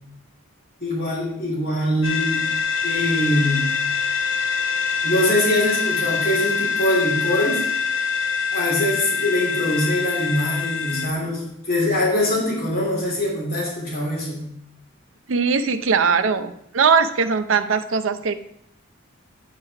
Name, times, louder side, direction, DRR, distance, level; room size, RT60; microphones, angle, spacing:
voice 1, 0.8-2.5 2.8-3.7 5.0-7.6 8.5-14.4, left 1 dB, 45° left, -5 dB, 3.1 m, -23 dB
sound 1, 2.0-11.1, left 5 dB, 65° left, 1.3 m, -24 dB
voice 2, 15.3-18.3, right 5 dB, 65° right, 10 dB, 0.6 m, -20 dB
9.7 x 4.8 x 4.7 m, 0.75 s
head